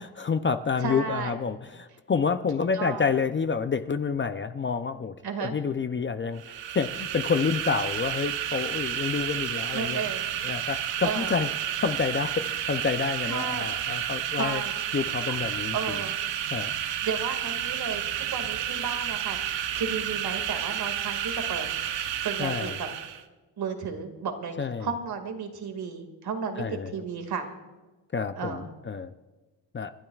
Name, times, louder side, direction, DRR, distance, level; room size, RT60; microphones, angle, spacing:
voice 1, 0.0-5.1 5.4-10.1 10.4-11.5 11.8-14.6 14.9-16.0 16.5-16.7 22.4-22.8 24.6-24.9 26.6-26.9 28.1-29.1 29.7-29.9, left 5 dB, 30° left, 9 dB, 0.5 m, -28 dB
voice 2, 0.8-1.4 2.7-3.1 5.2-5.5 9.7-10.3 11.0-11.4 13.3-13.7 14.4-14.7 15.3-15.4 15.7-16.2 17.0-19.4 19.8-21.7 22.2-22.9 23.6-27.5 28.4-28.7, right 5 dB, 60° right, 6 dB, 2.1 m, -33 dB
sound 1, 6.4-23.2, right 10 dB, 85° right, 1.0 m, -31 dB
30.0 x 12.0 x 2.4 m, 1.2 s
cardioid pair, 110°, 42 cm